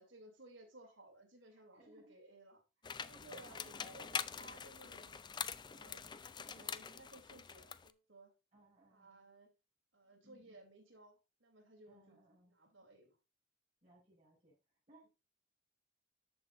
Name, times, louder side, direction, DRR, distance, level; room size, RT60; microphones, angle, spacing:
voice 1, 0.0-2.6 3.0-5.2 5.7-6.1 6.4-8.3 8.9-9.5 9.9-12.2 12.5-13.2, right 2 dB, 65° right, 2 dB, 3.2 m, -59 dB
voice 2, 1.5-2.2 2.8-2.9 3.2-4.6 5.8-6.3 8.5-9.2 10.0-10.7 11.9-12.5 13.8-14.6 14.9-15.1, right 2 dB, 35° right, -5 dB, 5.9 m, -67 dB
sound 1, 2.8-7.9, left 6 dB, 20° left, 0.3 m, -44 dB
13.5 x 5.7 x 2.6 m, 0.28 s
head